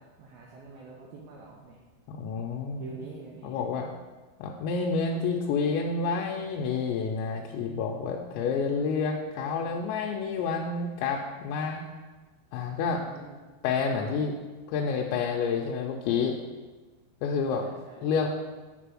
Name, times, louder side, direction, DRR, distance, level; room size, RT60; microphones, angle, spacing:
voice 1, 0.0-1.8 2.8-3.6 12.9-13.4 17.5-18.1, right 3 dB, 80° right, -2 dB, 2.1 m, -46 dB
voice 2, 2.1-2.8 3.4-3.9 4.4-11.8 12.5-13.0 13.6-14.3 14.7-16.4 17.2-17.6 18.0-18.3, left 5 dB, 90° left, 0 dB, 2.9 m, -29 dB
7.4 x 3.3 x 6.2 m, 1.3 s
omnidirectional pair, 5.1 m